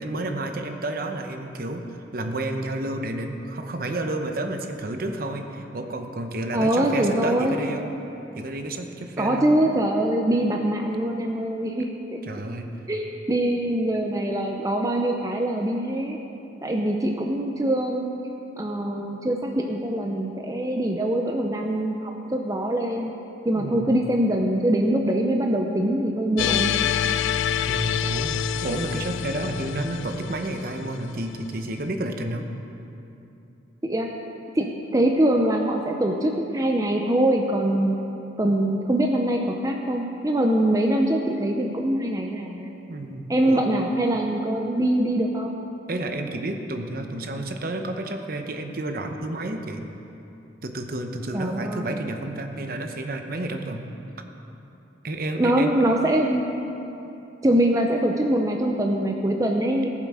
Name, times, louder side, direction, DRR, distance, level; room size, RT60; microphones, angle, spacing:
voice 1, 0.0-7.9 8.3-9.5 12.2-12.7 23.5-24.0 27.2-27.4 27.7-32.5 42.9-43.6 45.9-49.9 50.6-53.9 55.0-55.8, right 1 dB, 50° right, 5 dB, 0.9 m, -31 dB
voice 2, 6.5-7.6 9.2-12.2 12.9-16.2 16.6-18.2 18.6-23.1 23.4-26.7 33.8-34.1 34.5-38.0 38.4-42.7 43.3-45.6 51.3-51.9 55.4-56.5 57.4-59.9, right 1 dB, 20° right, 2 dB, 0.6 m, -23 dB
sound 1, 26.4-31.5, left 9 dB, 80° left, 0.3 m, -27 dB
19.0 x 7.4 x 4.9 m, 2.9 s
head